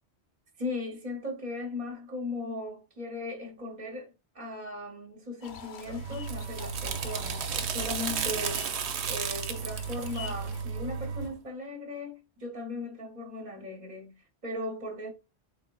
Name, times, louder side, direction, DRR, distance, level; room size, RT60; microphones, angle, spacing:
voice 1, 0.6-15.1, left 2 dB, 45° right, 0.9 m, -38 dB
sound 1, 5.4-10.6, left 7 dB, 55° left, 0.6 m, -48 dB
sound 2, 5.8-11.3, right 6 dB, 80° right, 0.9 m, -33 dB
3.9 x 3.6 x 2.2 m
omnidirectional pair, 1.1 m